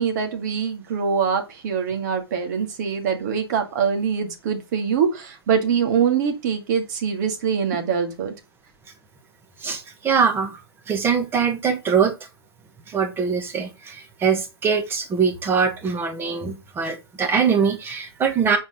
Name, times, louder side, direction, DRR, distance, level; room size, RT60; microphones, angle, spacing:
voice 1, 0.0-8.3, right 6 dB, 45° right, 2.0 m, -23 dB
voice 2, 9.6-12.1 12.9-18.6, right 6 dB, 15° right, 1.4 m, -22 dB
7.2 x 4.6 x 5.2 m
figure-of-eight pair, 110°, 13 cm